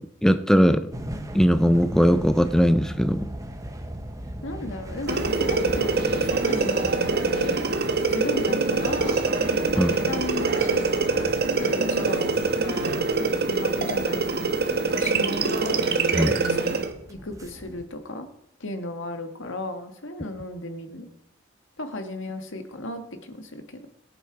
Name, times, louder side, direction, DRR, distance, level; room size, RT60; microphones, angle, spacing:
voice 1, 0.2-0.9 1.3-3.3 9.8-9.9 16.1-16.4, equal, 5° left, 10 dB, 0.5 m, -19 dB
sound 1, 0.9-17.8, equal, 15° right, 1.0 m, -38 dB
voice 2, 4.4-7.6 8.1-9.3 9.7-11.3 11.6-12.3 12.6-14.2 14.7-15.9 16.5-16.6 17.1-18.3 18.6-21.1 21.8-23.8, left 2 dB, 65° left, 6 dB, 1.8 m, -35 dB
sound 2, 5.1-16.9, right 3 dB, 50° right, 1.3 m, -24 dB
23.0 x 7.8 x 4.8 m, 0.79 s
head